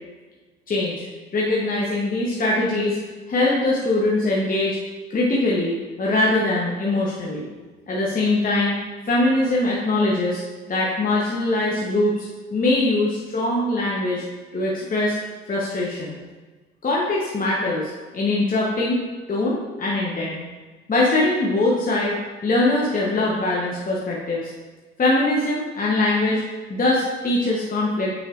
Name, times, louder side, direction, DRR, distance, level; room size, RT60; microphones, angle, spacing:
voice 1, 0.7-1.1 1.3-3.0 3.3-4.8 5.1-7.5 7.9-8.8 9.1-10.4 10.7-14.3 14.5-15.2 15.5-16.2 16.8-19.0 19.3-20.4 20.9-24.5 25.0-26.4 26.7-28.1, left 2 dB, 25° left, -4 dB, 1.1 m, -22 dB
7.1 x 6.1 x 2.6 m, 1.3 s
hypercardioid pair, 60°, 34 cm